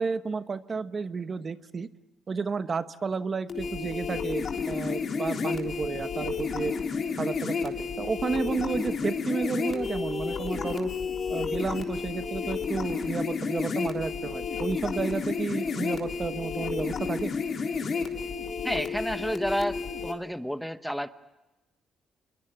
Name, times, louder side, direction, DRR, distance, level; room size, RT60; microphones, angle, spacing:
voice 1, 0.0-1.9 2.3-6.7 7.2-10.9 11.3-17.3, right 5 dB, 40° right, 12 dB, 1.1 m, -32 dB
sound 1, 3.5-20.1, left 5 dB, 50° left, 3.5 m, -31 dB
voice 2, 18.6-21.1, equal, ahead, 11 dB, 1.0 m, -30 dB
28.0 x 22.5 x 9.0 m, 1.0 s
cardioid pair, 90°, 0 cm